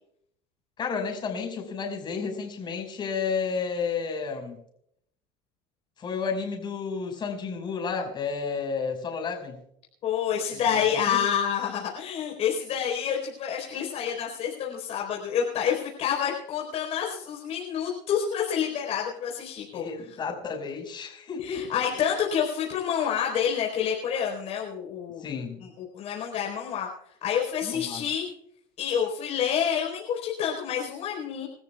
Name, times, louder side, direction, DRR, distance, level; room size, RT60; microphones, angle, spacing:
voice 1, 0.8-4.6 6.0-9.6 10.5-11.2 19.7-22.1 25.2-25.6 27.6-28.0, left 5 dB, 35° left, 2 dB, 5.4 m, -32 dB
voice 2, 10.0-20.2 21.4-25.2 25.6-26.9 27.2-28.3 28.8-31.5, left 8 dB, 50° left, -2 dB, 4.2 m, -28 dB
27.5 x 13.5 x 2.4 m, 0.71 s
supercardioid pair, 120°, 13 cm